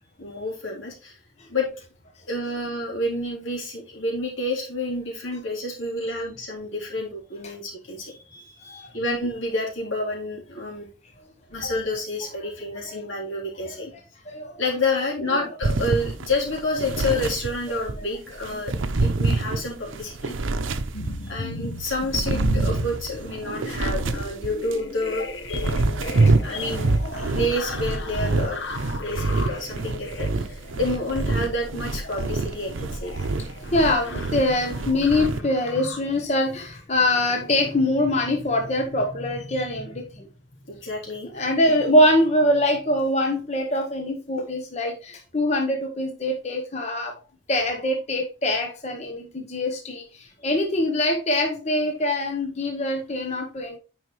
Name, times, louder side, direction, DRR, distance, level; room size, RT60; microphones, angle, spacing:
voice 1, 0.2-1.2 1.5-1.7 2.3-10.9 11.5-13.9 14.6-20.4 21.2-25.3 26.4-26.9 27.3-28.6 29.0-33.1 40.7-41.9, left 2 dB, 80° left, -3 dB, 3.2 m, -29 dB
voice 2, 14.3-14.6 15.3-15.4 17.7-17.8 21.3-21.4 25.5-25.6 26.3-26.7 27.2-27.3 33.7-40.2 41.3-47.1 47.5-53.8, left 1 dB, 35° left, 3 dB, 0.8 m, -24 dB
sound 1, 15.6-18.0 18.4-21.4 21.8-24.8 25.3-35.4, right 3 dB, 85° right, 0.7 m, -26 dB
sound 2, 20.9-36.3 37.0-37.3 37.6-37.8 38.1-38.3 38.5-38.8, left 2 dB, 65° left, 0.9 m, -37 dB
9.8 x 4.8 x 3.1 m, 0.35 s
head